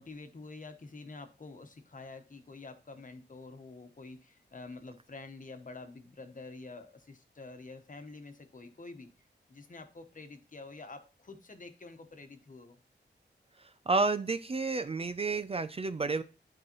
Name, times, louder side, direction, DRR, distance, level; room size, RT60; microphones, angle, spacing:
voice 1, 0.0-9.1 9.5-12.8, left 3 dB, 45° left, 6 dB, 1.1 m, -48 dB
voice 2, 13.9-16.2, right 3 dB, 30° right, 11 dB, 0.4 m, -30 dB
11.0 x 4.7 x 3.0 m, 0.34 s
wide cardioid pair, 120°, 18 cm